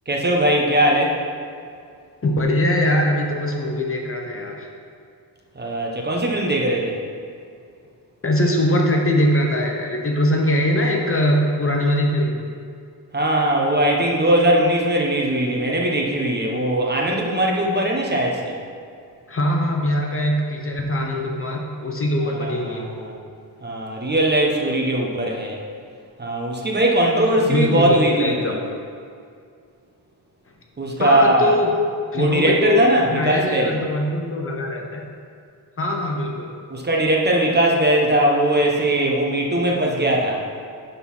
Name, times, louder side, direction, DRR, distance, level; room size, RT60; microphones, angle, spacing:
voice 1, 0.1-1.2 5.5-6.9 13.1-18.5 22.3-23.2 23.6-25.6 26.2-28.6 30.8-31.6 32.1-33.7 36.7-40.4, right 1 dB, 25° right, -1 dB, 1.1 m, -20 dB
voice 2, 2.2-4.7 8.2-12.4 19.3-23.0 27.5-28.6 31.0-31.7 32.1-35.0 35.8-36.5, left 1 dB, 30° left, 0 dB, 1.2 m, -22 dB
11.0 x 4.1 x 5.7 m, 2.3 s
cardioid pair, 115°, 41 cm